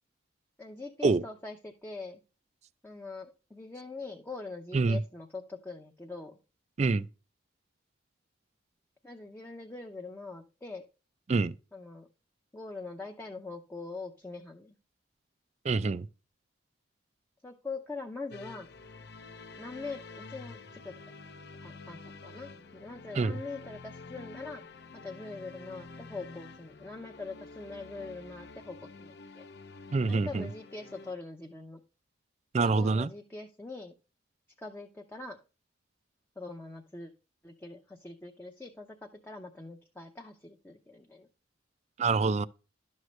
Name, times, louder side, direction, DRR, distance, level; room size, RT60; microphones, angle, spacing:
voice 1, 0.6-2.2 2.8-6.4 9.0-10.8 11.7-12.1 12.5-14.7 17.4-18.7 19.6-20.0 20.3-20.9 21.6-24.6 24.9-29.4 30.1-31.8 32.6-33.9 34.6-35.4 36.4-37.1 37.4-41.3, left 3 dB, 10° left, 0.6 m, -43 dB
voice 2, 15.6-16.1 23.2-23.4 29.9-30.5 32.5-33.1 42.0-42.5, right 3 dB, 35° right, 0.3 m, -26 dB
sound 1, 18.3-31.1, left 4 dB, 55° left, 0.7 m, -48 dB
11.5 x 6.4 x 3.2 m
head